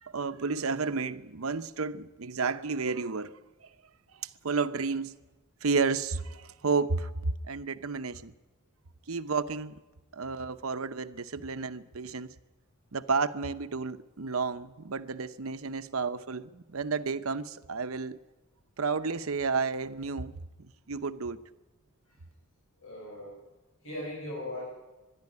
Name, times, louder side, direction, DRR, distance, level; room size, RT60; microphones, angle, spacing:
voice 1, 0.0-3.3 4.2-5.2 5.6-7.1 7.5-8.3 9.1-9.8 10.1-12.3 12.9-18.2 18.8-21.4, right 4 dB, 80° right, 0.8 m, -32 dB
voice 2, 22.8-23.4 23.8-24.6, left 1 dB, 65° left, 6.4 m, -39 dB
24.0 x 11.5 x 9.6 m
head